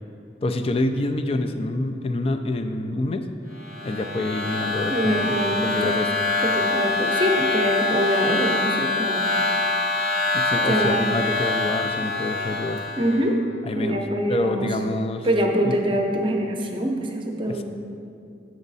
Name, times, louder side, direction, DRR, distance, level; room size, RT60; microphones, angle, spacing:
voice 1, 0.4-3.2 3.8-5.3 5.6-6.1 10.3-12.8 13.6-14.0 14.3-15.3 15.6-15.7 17.5-17.6, left 2 dB, 30° left, 7 dB, 0.4 m, -26 dB
sound 1, 3.6-13.2, left 3 dB, 65° left, 1.1 m, -25 dB
voice 2, 4.9-6.0 6.4-9.3 10.7-11.1 13.0-13.4 13.7-14.7 15.2-17.6, equal, 25° right, 2 dB, 0.7 m, -24 dB
8.0 x 6.3 x 4.0 m, 2.5 s
head